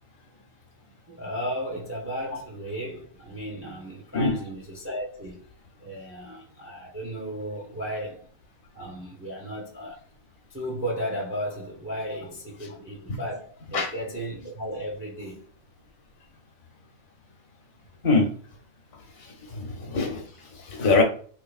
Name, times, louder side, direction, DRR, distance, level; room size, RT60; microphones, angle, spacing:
voice 1, 1.1-5.4 5.8-8.3 8.7-10.0 10.5-15.5 19.4-19.6, equal, 15° right, 0.4 m, -34 dB
voice 2, 19.5-20.2 20.6-21.0, left 3 dB, 80° left, 1.3 m, -23 dB
3.2 x 3.1 x 2.4 m
omnidirectional pair, 1.4 m